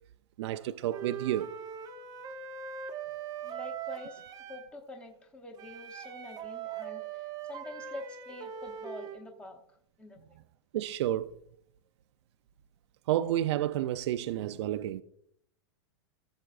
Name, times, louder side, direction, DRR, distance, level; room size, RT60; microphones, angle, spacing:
voice 1, 0.4-1.5 10.7-11.3 13.1-15.0, right 12 dB, 70° right, 0.4 m, -30 dB
Wind instrument woodwind instrument, 0.9-4.7 5.6-9.2, right 8 dB, 25° right, 0.7 m, -41 dB
voice 2, 3.4-4.2 4.5-10.4, left 2 dB, 5° left, 0.9 m, -46 dB
15.0 x 7.4 x 2.5 m
supercardioid pair, 155°, 15 cm